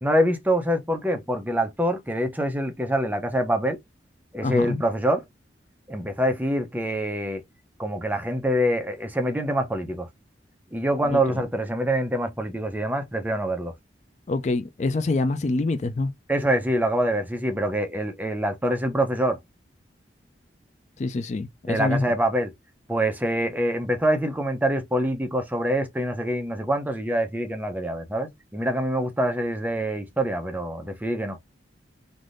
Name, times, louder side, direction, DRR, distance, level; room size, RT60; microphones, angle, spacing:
voice 1, 0.0-3.8 4.3-5.2 5.9-7.4 7.8-10.1 10.7-13.7 16.3-19.4 21.7-22.5 22.9-31.4, right 1 dB, 10° right, 0.5 m, -25 dB
voice 2, 4.4-4.8 11.1-11.4 14.3-16.1 21.0-22.1, left 2 dB, 40° left, 0.4 m, -26 dB
3.3 x 2.6 x 2.5 m
head